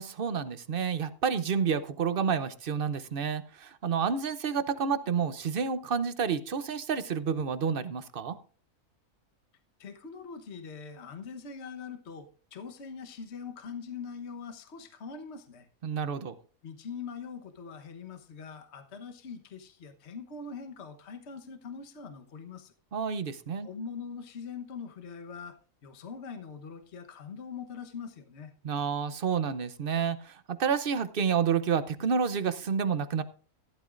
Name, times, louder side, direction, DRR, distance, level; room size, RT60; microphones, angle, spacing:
voice 1, 0.0-8.4 15.8-16.3 22.9-23.7 28.6-33.2, right 6 dB, 45° right, 13 dB, 0.8 m, -29 dB
voice 2, 9.8-15.7 16.6-22.7 23.6-25.5 25.8-28.5, left 5 dB, 50° left, 6 dB, 1.4 m, -42 dB
14.5 x 12.5 x 2.5 m, 0.41 s
omnidirectional pair, 1.6 m